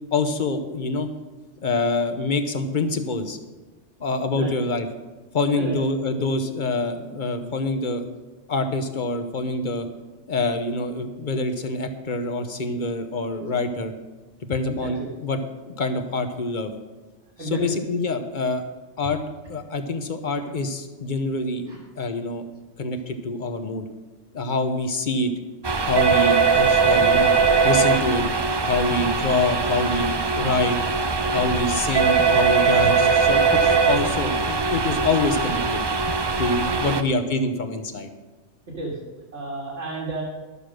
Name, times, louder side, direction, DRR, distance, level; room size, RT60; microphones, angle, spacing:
voice 1, 0.1-1.1 1.6-3.4 4.0-4.9 5.3-8.1 8.5-9.9 10.3-13.9 14.5-15.4 15.7-16.7 17.4-18.6 19.0-19.2 19.5-21.6 22.0-22.4 22.8-23.9 24.3-25.3 25.8-27.3 27.6-28.2 28.6-30.8 31.3-35.8 36.4-38.1, left 2 dB, 45° left, 8 dB, 1.0 m, -25 dB
voice 2, 14.7-15.1 17.4-17.7 21.7-21.8 36.6-37.0 38.8-39.0 39.3-40.2, right 2 dB, 70° right, -5 dB, 2.2 m, -32 dB
sound 1, 25.6-37.0, right 4 dB, 35° right, 0.4 m, -21 dB
12.0 x 6.8 x 6.4 m, 1.2 s
omnidirectional pair, 1.2 m